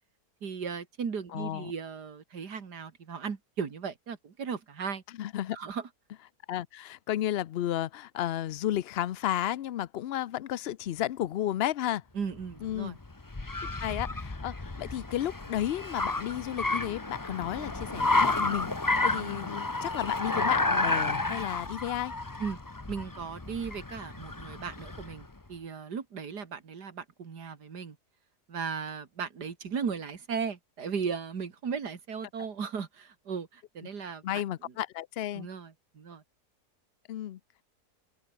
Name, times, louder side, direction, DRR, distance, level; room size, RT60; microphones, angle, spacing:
voice 1, 0.4-5.0 5.5-5.9 12.2-13.0 22.4-22.6 22.9-28.0 28.5-34.4 35.3-36.2, right 6 dB, 85° right, 2.6 m, -36 dB
voice 2, 1.3-1.7 5.2-5.6 6.5-12.0 12.6-13.0 13.6-18.7 19.0-22.1 34.0-35.5 37.1-37.4, left 12 dB, 85° left, 0.5 m, -33 dB
Car, 12.3-25.2, left 2 dB, 15° left, 0.9 m, -31 dB
open air
omnidirectional pair, 1.7 m